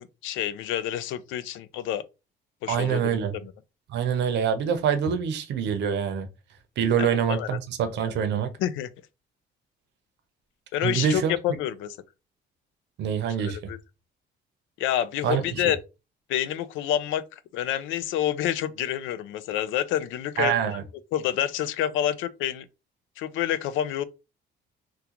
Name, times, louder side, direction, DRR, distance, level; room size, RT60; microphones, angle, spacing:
voice 1, 0.0-2.0 2.6-3.5 7.0-7.6 8.6-8.9 10.7-12.0 13.4-13.8 14.8-15.8 16.3-20.8 21.1-22.7 23.2-24.0, left 11 dB, 85° left, 0.4 m, -28 dB
voice 2, 2.7-3.3 3.9-6.3 6.8-8.5 10.8-11.4 13.0-13.7 15.2-15.5 20.4-20.8, right 8 dB, 60° right, 0.7 m, -25 dB
3.6 x 2.3 x 2.9 m
cardioid pair, 145°, 20 cm